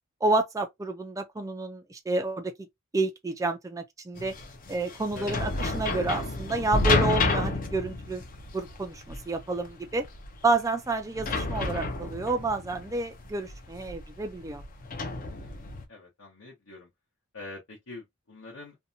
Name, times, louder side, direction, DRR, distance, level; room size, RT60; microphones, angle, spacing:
voice 1, 0.2-2.7 2.9-4.3 4.7-8.2 8.5-10.0 10.4-14.6, right 3 dB, 15° right, 0.3 m, -29 dB
sound 1, 4.2-15.8, left 3 dB, 40° left, 0.6 m, -31 dB
voice 2, 15.9-16.9 17.3-18.8, left 3 dB, 70° left, 1.0 m, -45 dB
2.7 x 2.2 x 2.6 m
head